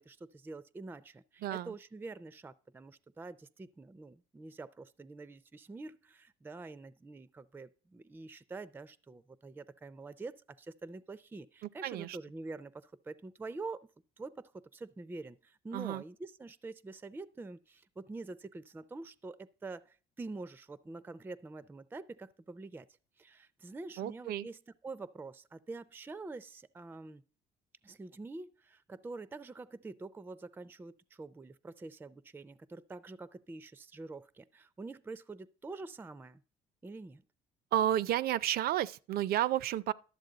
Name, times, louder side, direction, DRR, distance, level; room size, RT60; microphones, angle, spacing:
voice 1, 0.0-13.9 14.2-22.9 23.2-24.6 24.8-27.2 27.8-36.4 36.8-37.2, right 3 dB, 10° right, 0.4 m, -46 dB
voice 2, 1.4-1.7 11.8-12.2 15.7-16.0 24.0-24.5 37.7-39.9, right 12 dB, 65° right, 0.5 m, -31 dB
12.0 x 7.3 x 3.9 m
cardioid pair, 110°, 17 cm